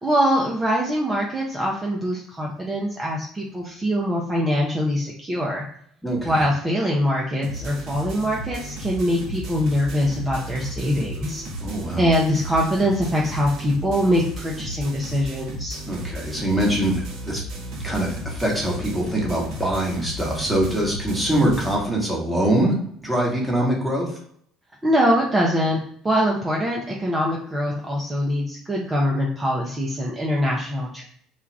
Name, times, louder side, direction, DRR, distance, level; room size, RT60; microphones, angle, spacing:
voice 1, 0.0-5.6 6.2-11.4 12.0-15.8 24.8-25.8 26.0-31.0, equal, 20° right, -3 dB, 0.5 m, -23 dB
voice 2, 6.0-6.3 11.6-12.1 15.9-17.4 17.8-24.2, right 1 dB, ahead, -3 dB, 1.1 m, -23 dB
sound 1, 7.4-21.7, right 1 dB, 60° right, 0.8 m, -34 dB
2.4 x 2.3 x 3.0 m, 0.66 s
figure-of-eight pair, 60°, 0 cm